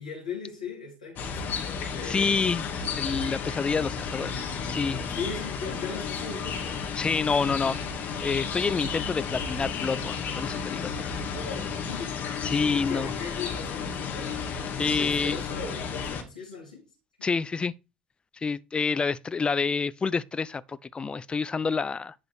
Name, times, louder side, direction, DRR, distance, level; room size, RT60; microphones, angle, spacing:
voice 1, 0.0-2.5 5.1-6.8 11.3-12.2 12.4-14.4 14.9-16.8 17.2-17.3, left 5 dB, 85° left, 3.5 m, -38 dB
sound 1, 1.2-16.2, left 6 dB, 50° left, 2.4 m, -33 dB
voice 2, 2.0-2.7 3.0-5.0 7.0-7.8 8.2-11.1 12.4-13.1 14.8-15.4 17.2-17.7 18.4-22.1, left 5 dB, 25° left, 0.6 m, -28 dB
10.5 x 5.0 x 4.9 m
hypercardioid pair, 65°, 4 cm